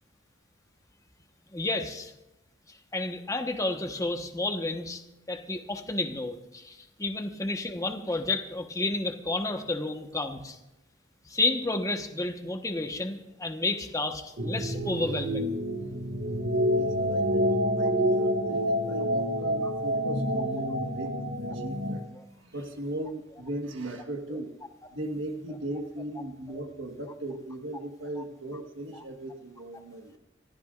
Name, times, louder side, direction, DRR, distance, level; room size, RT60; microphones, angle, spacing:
voice 1, 1.5-2.1 2.9-5.0 5.3-10.6 11.3-15.6 22.2-22.3, left 2 dB, 20° left, 5 dB, 1.2 m, -31 dB
sound 1, 14.4-22.0, equal, 65° right, 1.8 m, -28 dB
voice 2, 16.7-24.5 24.9-30.2, right 1 dB, 85° right, 3 dB, 1.5 m, -38 dB
27.0 x 15.0 x 2.5 m, 0.94 s
head